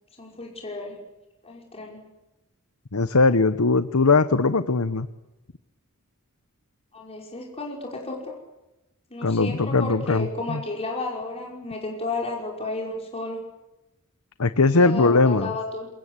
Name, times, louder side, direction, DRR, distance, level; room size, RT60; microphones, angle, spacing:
voice 1, 0.2-1.0 1.4-2.0 6.9-8.3 9.1-13.4 14.7-15.9, left 2 dB, 30° left, -1 dB, 5.5 m, -32 dB
voice 2, 2.9-5.1 9.2-10.6 14.4-15.5, left 3 dB, 75° left, 12 dB, 1.0 m, -20 dB
27.5 x 23.5 x 8.3 m, 0.98 s
head